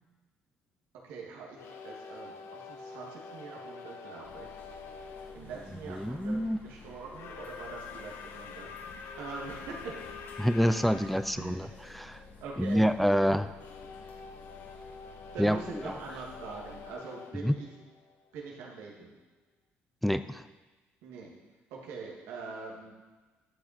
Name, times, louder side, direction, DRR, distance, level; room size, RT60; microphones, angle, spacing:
voice 1, 1.0-4.6 5.3-6.4 6.6-9.7 11.4-11.5 12.4-12.8 15.3-17.7 18.3-19.1 21.0-21.3 21.7-22.9, right 4 dB, 90° right, -3 dB, 2.2 m, -43 dB
sound 1, 1.5-5.4 7.1-11.2 13.5-18.4, left 5 dB, 70° left, 1.0 m, -46 dB
sound 2, 4.2-16.9, left 4 dB, 50° left, 2.8 m, -52 dB
voice 2, 5.9-6.6 10.4-12.2 12.6-13.5 15.4-15.6 15.8-16.0 17.3-17.5 20.0-20.4, equal, ahead, 11 dB, 0.3 m, -27 dB
11.5 x 6.5 x 4.4 m, 1.3 s
cardioid pair, 105°, 4 cm